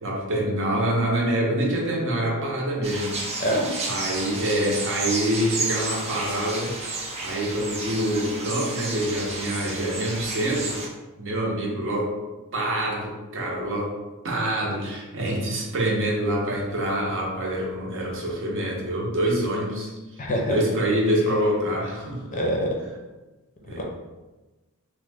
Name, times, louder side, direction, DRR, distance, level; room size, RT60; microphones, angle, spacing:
voice 1, 0.0-3.2 3.8-6.7 7.2-10.8 11.2-12.1 12.5-13.9 14.2-19.9 20.5-22.4 23.7-23.8, right 1 dB, 60° right, -1 dB, 0.7 m, -26 dB
sound 1, 2.8-10.9, right 2 dB, 30° right, 0.5 m, -32 dB
voice 2, 20.2-20.6 22.3-22.7 23.8-23.9, equal, 35° left, 0 dB, 0.5 m, -24 dB
3.0 x 2.1 x 3.4 m, 1.1 s
head